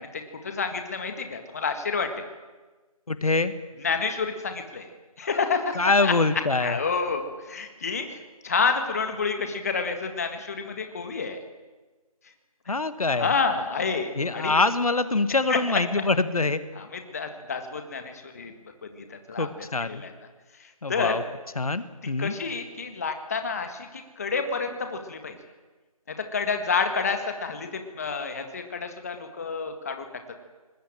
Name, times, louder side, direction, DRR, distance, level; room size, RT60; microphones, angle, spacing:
voice 1, 0.0-2.2 3.8-4.9 5.2-6.1 6.6-11.4 13.1-14.6 15.5-15.8 16.7-18.5 18.9-20.1 20.6-21.2 22.2-25.4 26.1-30.1, left 5 dB, 25° left, 6 dB, 1.8 m, -29 dB
voice 2, 3.1-3.5 5.7-6.8 12.7-13.3 14.2-16.6 19.4-20.0 20.8-21.2 21.5-22.3, left 3 dB, 70° left, 11 dB, 1.6 m, -24 dB
25.0 x 20.5 x 7.7 m, 1.3 s
figure-of-eight pair, 170°, 19 cm